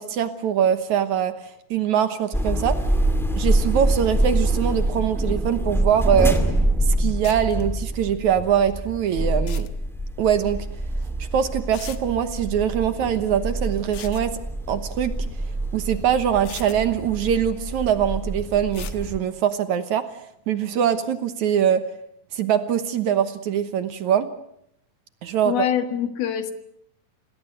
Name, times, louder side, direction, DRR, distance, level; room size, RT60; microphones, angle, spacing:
voice 1, 0.0-1.3 1.7-2.8 3.4-6.4 6.9-9.7 10.2-10.7 11.3-14.3 14.7-15.1 15.7-20.1 20.5-21.8 22.3-24.3 25.2-25.5, right 9 dB, 65° right, 11 dB, 2.2 m, -22 dB
sound 1, 2.3-19.2, right 1 dB, ahead, 1.2 m, -25 dB
sound 2, 6.0-6.1 6.3-6.4 7.2-7.6 9.3-9.7 11.0-11.1 11.7-12.0 13.8-14.3 15.8-15.9 16.4-16.8 18.7-19.0, left 10 dB, 65° left, 1.8 m, -40 dB
voice 2, 25.5-26.5, left 9 dB, 90° left, 9 dB, 3.6 m, -24 dB
27.0 x 19.5 x 8.0 m, 0.74 s
omnidirectional pair, 4.2 m